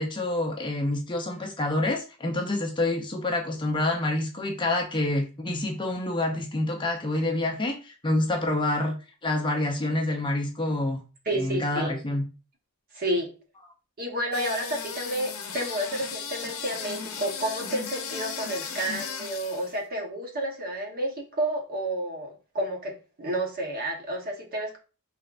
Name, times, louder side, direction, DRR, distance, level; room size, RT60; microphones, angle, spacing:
voice 1, 0.0-8.9 9.2-11.0 11.4-12.2, left 2 dB, 20° left, 2 dB, 0.6 m, -27 dB
voice 2, 11.2-11.9 12.9-13.3 14.0-24.8, right 1 dB, 45° right, 1 dB, 1.0 m, -30 dB
sound 1, 14.3-19.7, left 6 dB, 70° left, 0.8 m, -36 dB
4.6 x 3.3 x 2.5 m, 0.33 s
head